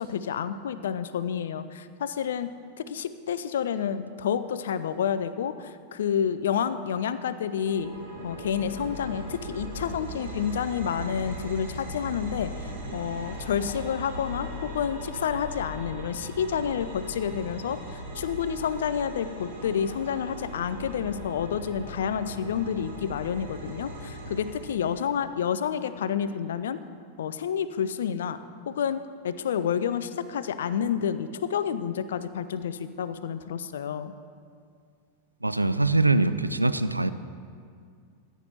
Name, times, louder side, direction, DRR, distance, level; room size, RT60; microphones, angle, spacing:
voice 1, 0.0-7.9 8.2-12.5 12.9-14.5 14.7-17.8 18.1-26.8 27.2-28.4 28.7-29.0 29.2-34.1, left 8 dB, 60° left, 13 dB, 0.4 m, -29 dB
sound 1, 7.6-25.0, equal, 65° right, 2.1 m, -39 dB
voice 2, 35.4-37.1, right 2 dB, 85° right, 13 dB, 0.4 m, -23 dB
14.5 x 9.2 x 2.9 m, 2.2 s
figure-of-eight pair, 90°, 0 cm